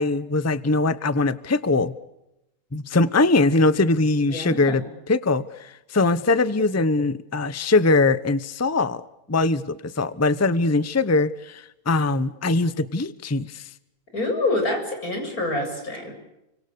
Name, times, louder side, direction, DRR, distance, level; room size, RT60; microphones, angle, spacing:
voice 1, 0.0-1.9 2.7-9.0 9.3-13.7, left 3 dB, 15° left, 15 dB, 0.8 m, -22 dB
voice 2, 4.3-4.8 14.1-16.1, left 2 dB, 85° left, 3 dB, 8.0 m, -26 dB
29.5 x 25.5 x 6.8 m, 0.90 s
omnidirectional pair, 1.5 m